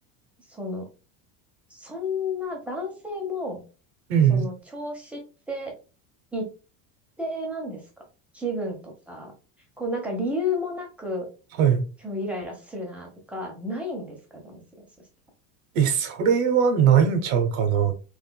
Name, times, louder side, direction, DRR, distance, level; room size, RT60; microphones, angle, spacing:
voice 1, 0.4-0.9 1.7-3.6 4.3-5.7 6.3-6.5 7.2-8.0 8.3-9.3 9.8-11.3 12.0-14.9, left 2 dB, 5° right, 1.0 m, -32 dB
voice 2, 4.1-4.5 11.6-11.8 15.7-17.9, right 8 dB, 90° right, 1.1 m, -20 dB
3.6 x 3.4 x 2.3 m
cardioid pair, 155°, 40 cm